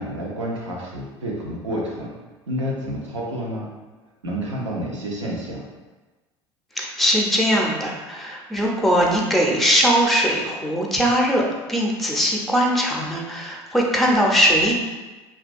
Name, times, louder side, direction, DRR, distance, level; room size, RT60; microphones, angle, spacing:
voice 1, 0.0-2.1 2.5-3.7 4.2-5.7, equal, 90° right, -3 dB, 0.5 m, -29 dB
voice 2, 6.8-14.8, equal, ahead, -1 dB, 0.5 m, -20 dB
2.8 x 2.3 x 2.5 m, 1.2 s
hypercardioid pair, 65°, 15 cm